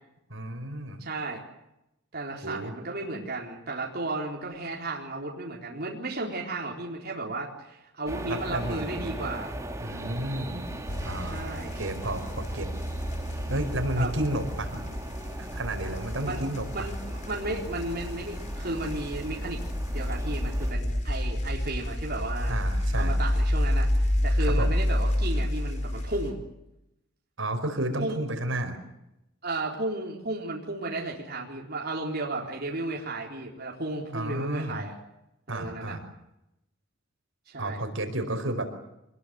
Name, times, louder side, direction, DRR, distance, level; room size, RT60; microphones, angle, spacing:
voice 1, 0.3-1.0 2.4-2.7 8.3-9.1 9.8-10.7 11.0-11.4 11.7-12.7 13.5-14.8 15.4-16.9 22.5-23.1 24.4-24.8 27.4-28.8 34.1-34.8 35.5-36.0 37.6-38.6, right 1 dB, 70° right, 7 dB, 5.0 m, -32 dB
voice 2, 1.0-1.4 2.1-9.5 11.2-11.7 13.9-14.1 16.2-16.4 16.7-19.6 19.9-22.6 22.9-26.4 28.0-28.2 29.4-34.9 35.5-36.0 37.5-37.8, right 2 dB, 50° right, -1 dB, 4.2 m, -34 dB
sound 1, 8.1-20.7, right 1 dB, 15° right, 2.4 m, -39 dB
sound 2, 10.9-26.3, left 1 dB, 35° left, 4.4 m, -29 dB
25.5 x 21.5 x 7.9 m, 0.87 s
head